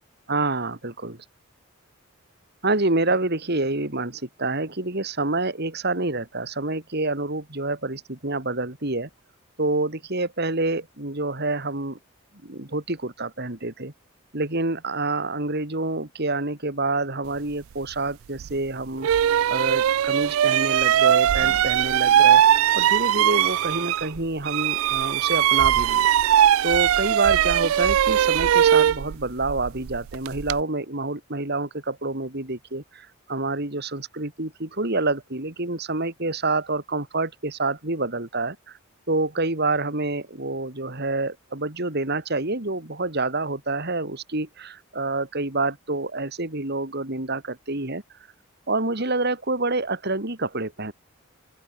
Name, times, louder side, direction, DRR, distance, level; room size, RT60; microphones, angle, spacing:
voice 1, 0.3-1.2 2.6-9.1 9.6-12.0 12.4-13.9 14.3-19.1 19.5-22.4 22.7-26.1 26.6-38.8 39.1-48.0 48.7-50.9, right 2 dB, 50° right, 3.0 m, -27 dB
sound 1, 18.4-18.5 19.0-24.2 24.4-30.6, right 10 dB, 75° right, 0.3 m, -20 dB
open air
head